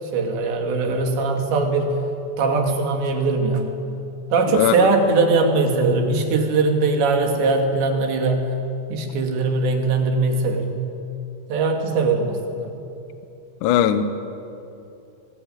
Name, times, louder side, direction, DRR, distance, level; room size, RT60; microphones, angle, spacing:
voice 1, 0.1-2.0 2.4-3.8 4.3-8.5 8.9-10.8 11.5-12.7, right 3 dB, 80° right, 3 dB, 4.6 m, -21 dB
voice 2, 4.6-4.9 13.6-14.0, left 11 dB, 70° left, 10 dB, 2.1 m, -19 dB
25.0 x 20.0 x 9.2 m, 2.8 s
omnidirectional pair, 5.0 m